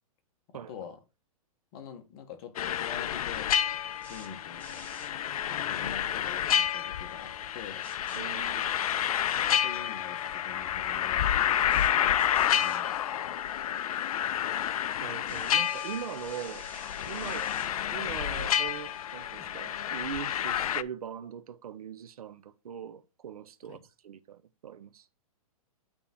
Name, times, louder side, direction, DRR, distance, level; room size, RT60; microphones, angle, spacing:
voice 1, 0.5-1.0 1.7-3.5 4.1-4.9 5.4-7.9 9.4-12.2 12.5-13.4 17.2-17.4 23.7-23.8, left 7 dB, 45° left, 1.5 m, -46 dB
sound 1, 2.6-20.8, left 10 dB, 75° left, 0.5 m, -30 dB
sound 2, 3.3-19.8, left 1 dB, 10° left, 1.9 m, -54 dB
voice 2, 8.1-8.7 12.5-12.6 15.0-16.6 17.1-17.6 17.9-23.8 24.0-25.1, right 8 dB, 85° right, 0.8 m, -41 dB
8.7 x 3.6 x 4.3 m
hypercardioid pair, 145°, 18 cm